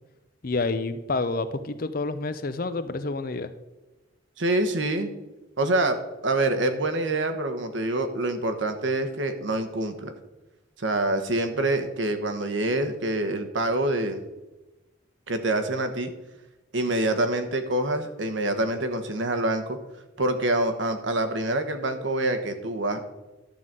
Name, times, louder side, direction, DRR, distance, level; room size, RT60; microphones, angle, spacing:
voice 1, 0.4-3.5, left 3 dB, 45° left, 11 dB, 0.6 m, -28 dB
voice 2, 4.4-5.1 5.6-10.1 10.8-14.2 15.3-16.1 16.7-19.8 20.2-23.0, right 2 dB, 75° right, 7 dB, 1.1 m, -26 dB
11.5 x 4.0 x 7.5 m, 1.1 s
head